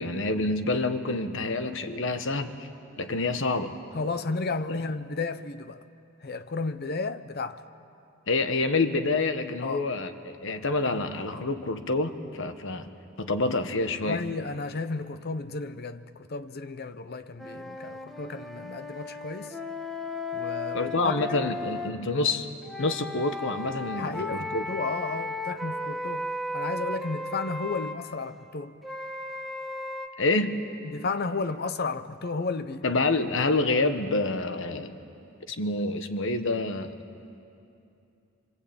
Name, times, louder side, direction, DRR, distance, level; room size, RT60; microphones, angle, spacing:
voice 1, 0.0-2.5 3.0-3.7 4.7-4.8 8.3-12.9 13.2-14.2 20.7-22.5 22.8-24.6 30.2-30.5 32.8-35.0 35.5-36.9, left 2 dB, 65° left, 1.4 m, -27 dB
voice 2, 3.9-5.8 6.2-7.6 9.6-9.8 14.0-19.6 20.3-21.5 23.9-26.3 26.5-28.8 30.8-32.9, left 3 dB, 50° left, 0.8 m, -33 dB
sound 1, 17.4-21.9 22.6-28.0 28.8-30.1, left 2 dB, ahead, 1.3 m, -35 dB
26.0 x 25.0 x 8.7 m
head